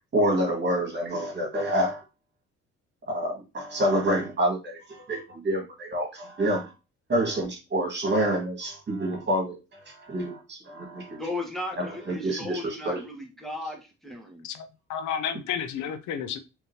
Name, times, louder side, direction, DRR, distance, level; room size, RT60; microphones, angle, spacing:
voice 1, 0.1-2.0 3.1-6.7 7.1-11.2 11.8-13.0, right 1 dB, 40° right, 1.9 m, -27 dB
voice 2, 11.2-14.5, left 2 dB, ahead, 1.3 m, -36 dB
voice 3, 14.4-16.4, left 8 dB, 80° left, 0.6 m, -32 dB
3.8 x 3.6 x 2.8 m
supercardioid pair, 70°, 29 cm